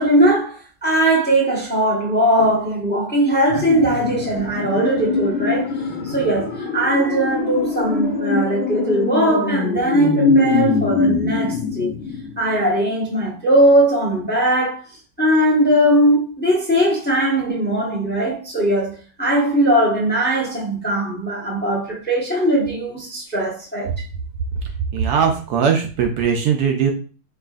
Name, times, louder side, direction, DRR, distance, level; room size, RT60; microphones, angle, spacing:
voice 1, 0.0-5.7 6.0-11.9 12.4-14.8 15.2-23.9, right 1 dB, 10° left, 0.8 m, -19 dB
sound 1, 3.5-12.6 12.9-13.0, left 4 dB, 60° left, 0.6 m, -22 dB
voice 2, 24.9-26.9, right 7 dB, 70° right, 1.1 m, -19 dB
4.8 x 3.0 x 2.4 m
omnidirectional pair, 1.9 m